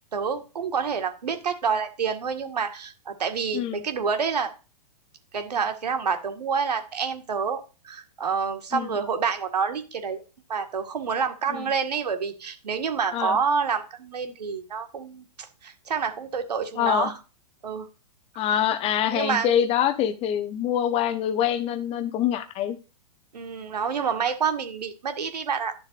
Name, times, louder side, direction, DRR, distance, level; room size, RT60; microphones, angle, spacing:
voice 1, 0.1-4.5 5.3-10.2 10.5-15.2 15.6-17.1 17.6-17.9 19.1-19.6 23.3-25.7, right 6 dB, 75° right, 7 dB, 1.8 m, -28 dB
voice 2, 16.8-17.1 18.4-22.8, left 10 dB, 30° left, 11 dB, 1.0 m, -25 dB
11.5 x 7.4 x 2.5 m, 0.32 s
hypercardioid pair, 115°, 21 cm